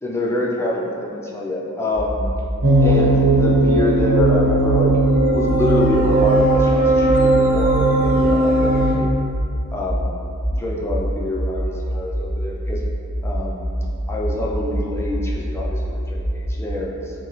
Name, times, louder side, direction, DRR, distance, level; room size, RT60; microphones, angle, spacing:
voice 1, 0.0-2.3 2.8-4.9 5.3-9.1 9.7-10.2 10.5-12.8 13.2-13.7 14.1-17.1, left 1 dB, 10° left, -3 dB, 0.3 m, -26 dB
sound 1, 1.9-16.7, equal, 20° right, 1.4 m, -26 dB
sound 2, 2.6-8.9, right 2 dB, 65° right, 0.6 m, -17 dB
4.6 x 2.0 x 3.0 m, 2.5 s
head